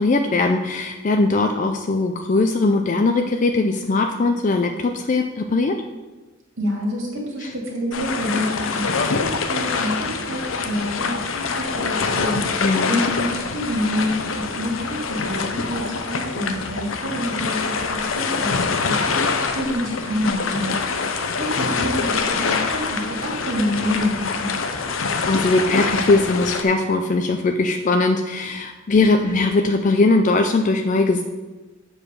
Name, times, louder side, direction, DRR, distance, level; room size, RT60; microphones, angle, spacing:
voice 1, 0.0-5.8 7.4-7.5 12.6-13.0 25.3-31.2, left 3 dB, 40° left, 5 dB, 0.4 m, -20 dB
voice 2, 6.6-24.5, equal, 70° right, -3 dB, 2.5 m, -28 dB
sound 1, 7.9-26.6, left 4 dB, 85° left, 0.7 m, -25 dB
7.4 x 4.8 x 6.4 m, 1.2 s
head